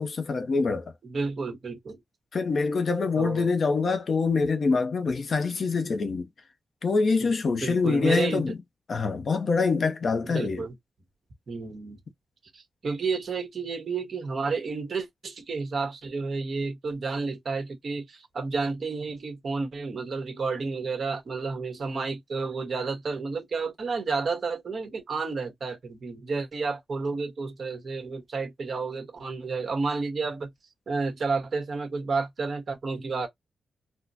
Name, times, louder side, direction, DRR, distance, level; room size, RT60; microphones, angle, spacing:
voice 1, 0.0-0.9 2.3-6.3 6.8-8.6 8.9-10.7, left 4 dB, 45° left, 0.6 m, -25 dB
voice 2, 1.1-2.0 3.2-3.5 7.2-8.5 10.3-10.7 11.5-12.0 12.5-30.5 30.9-33.3, right 4 dB, 45° right, 1.3 m, -31 dB
4.0 x 2.1 x 2.8 m
wide cardioid pair, 150°, 0 cm